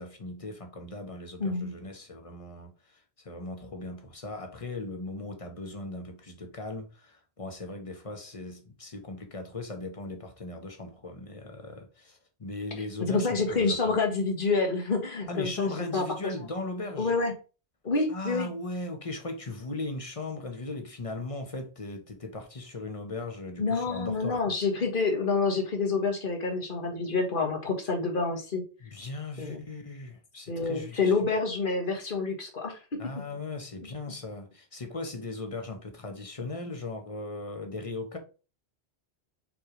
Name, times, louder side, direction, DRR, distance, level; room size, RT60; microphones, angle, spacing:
voice 1, 0.0-14.0 15.3-17.1 18.1-24.5 28.8-31.1 33.0-38.2, left 2 dB, 35° left, 1.2 m, -38 dB
voice 2, 1.4-1.7 13.0-16.1 17.0-17.3 17.8-18.5 23.6-28.6 29.4-29.6 30.5-32.8, left 4 dB, 50° left, 1.6 m, -28 dB
5.9 x 3.2 x 5.1 m
omnidirectional pair, 1.1 m